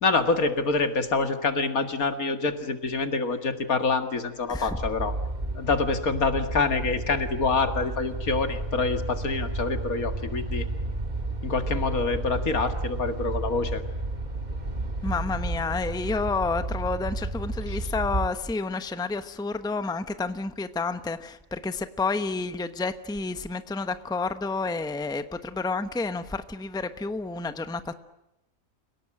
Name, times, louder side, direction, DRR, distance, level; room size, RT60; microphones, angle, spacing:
voice 1, 0.0-5.1 5.6-10.6 11.4-13.8 17.7-17.8, left 4 dB, 75° left, 8 dB, 2.5 m, -26 dB
sound 1, 4.7-18.3, right 2 dB, 30° right, 2.2 m, -32 dB
voice 2, 15.0-27.9, left 3 dB, 5° left, 11 dB, 0.9 m, -30 dB
30.0 x 18.0 x 8.8 m, 0.90 s
omnidirectional pair, 1.5 m